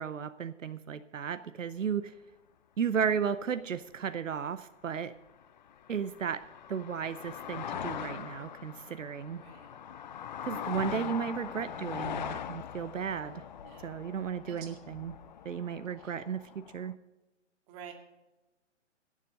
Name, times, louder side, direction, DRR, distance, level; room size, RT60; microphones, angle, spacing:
voice 1, 0.0-2.1 2.8-5.1 5.9-9.4 10.4-13.4 13.8-15.1 15.4-16.9, right 7 dB, 80° right, 12 dB, 0.8 m, -34 dB
sound 1, 5.3-16.9, left 8 dB, 40° left, 0.5 m, -41 dB
voice 2, 9.3-9.8 13.6-14.0 14.5-14.7 16.0-16.1 17.7-17.9, right 8 dB, 25° right, 3 dB, 2.1 m, -49 dB
16.5 x 7.5 x 5.3 m, 1.1 s
hypercardioid pair, 140°, 37 cm